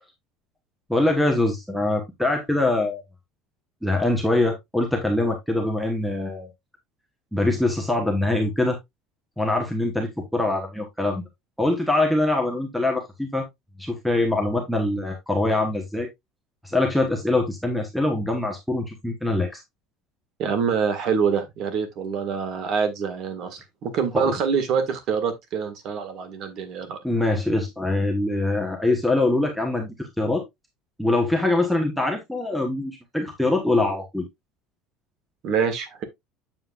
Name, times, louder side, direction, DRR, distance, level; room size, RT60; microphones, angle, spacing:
voice 1, 0.9-3.0 3.8-6.5 7.3-8.8 9.4-11.3 11.6-13.4 13.8-16.1 16.6-19.6 24.1-24.3 27.0-30.4 31.0-34.3, left 2 dB, ahead, 1.2 m, -23 dB
voice 2, 20.4-27.0 35.4-36.0, right 6 dB, 40° right, 1.7 m, -25 dB
7.8 x 7.4 x 2.4 m
cardioid pair, 170°, 0 cm